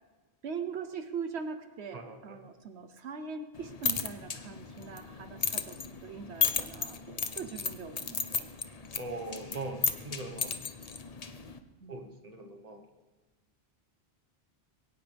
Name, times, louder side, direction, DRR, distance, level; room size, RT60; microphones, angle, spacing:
voice 1, 0.4-8.5 11.8-12.0, right 6 dB, 80° right, 8 dB, 1.1 m, -41 dB
voice 2, 1.9-2.4 9.0-10.6 11.9-12.8, right 2 dB, 35° right, 4 dB, 1.4 m, -41 dB
sound 1, 3.5-11.6, left 5 dB, 40° left, 0.8 m, -35 dB
22.5 x 17.5 x 3.5 m, 1.3 s
omnidirectional pair, 1.1 m